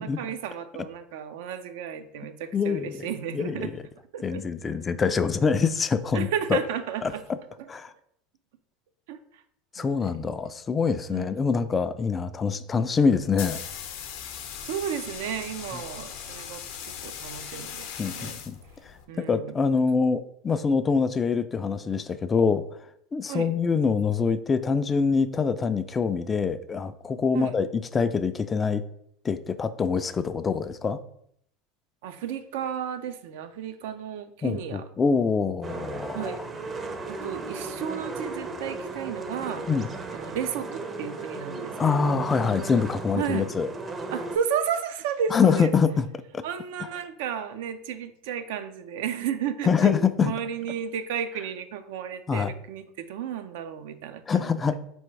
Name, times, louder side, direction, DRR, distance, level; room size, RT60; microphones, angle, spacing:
voice 1, 0.0-3.7 4.1-4.4 4.7-4.8 6.1-7.2 9.1-9.2 9.8-10.0 11.1-11.4 14.6-18.4 19.1-19.5 23.3-23.5 27.3-27.6 32.0-34.8 36.1-36.4 37.2-39.7 40.1-42.2 43.1-43.5 44.1-45.7 46.4-54.7, right 8 dB, 75° right, 9 dB, 0.4 m, -33 dB
voice 2, 2.5-3.1 3.3-3.8 4.2-6.6 7.0-7.4 7.7-7.9 9.7-13.6 18.0-18.6 19.2-22.6 23.1-28.8 29.2-31.0 34.4-36.4 39.7-39.9 41.8-43.7 45.3-46.1 46.3-46.4 49.6-50.3 52.3-52.5 54.3-54.8, left 5 dB, 25° left, 12 dB, 0.3 m, -25 dB
sound 1, 13.1-19.1, left 8 dB, 70° left, 0.6 m, -39 dB
sound 2, 35.6-44.4, right 3 dB, 30° right, 0.6 m, -36 dB
4.0 x 3.4 x 3.2 m, 0.71 s
hypercardioid pair, 95°, 0 cm